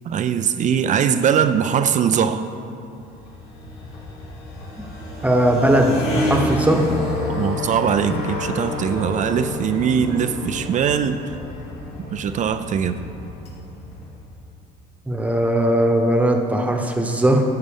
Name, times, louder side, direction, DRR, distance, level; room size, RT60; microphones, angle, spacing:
voice 1, 0.1-2.5 7.3-11.2 12.1-13.1, right 8 dB, 45° right, 9 dB, 0.5 m, -21 dB
sound 1, 2.8-14.4, left 2 dB, 85° left, 2.4 m, -29 dB
voice 2, 5.2-6.8 15.1-17.4, right 1 dB, 10° right, 2 dB, 1.1 m, -18 dB
13.5 x 7.8 x 3.5 m, 2.7 s
cardioid pair, 110°, 17 cm